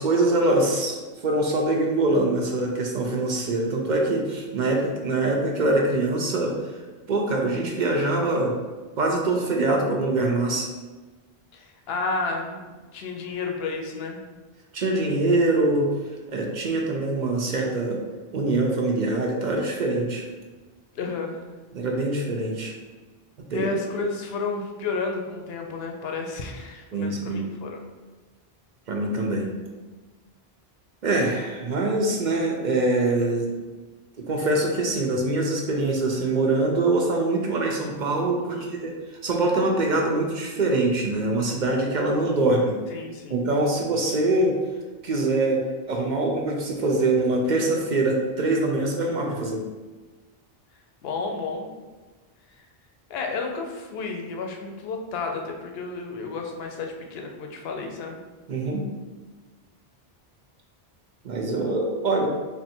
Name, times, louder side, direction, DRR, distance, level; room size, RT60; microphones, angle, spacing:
voice 1, 0.0-6.5 7.1-8.5 9.0-10.7 14.7-15.9 16.3-18.0 18.3-20.3 21.7-22.7 23.5-23.7 26.9-27.5 28.9-29.5 31.0-33.5 34.3-42.7 43.3-44.6 45.0-45.6 45.9-49.6 58.5-58.8 61.2-62.3, right 2 dB, 55° right, 0 dB, 0.6 m, -24 dB
voice 2, 11.5-12.6 12.9-14.2 20.9-21.4 23.5-27.8 38.5-38.7 42.9-43.4 51.0-51.7 52.5-52.6 53.1-58.2, left 4 dB, 75° left, 2 dB, 0.8 m, -31 dB
3.5 x 2.5 x 4.2 m, 1.3 s
omnidirectional pair, 1.1 m